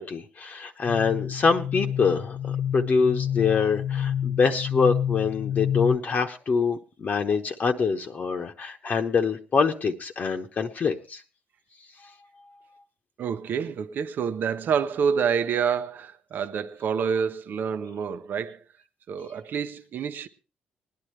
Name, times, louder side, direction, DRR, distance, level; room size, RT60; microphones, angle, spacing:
voice 1, 0.0-2.4 2.7-11.2, left 5 dB, 50° left, 1.0 m, -25 dB
sound 1, 0.9-6.0, left 9 dB, 80° left, 0.6 m, -28 dB
voice 2, 13.2-18.6 19.1-20.3, right 7 dB, 70° right, 0.8 m, -27 dB
19.5 x 10.5 x 3.2 m
cardioid pair, 80°, 3 cm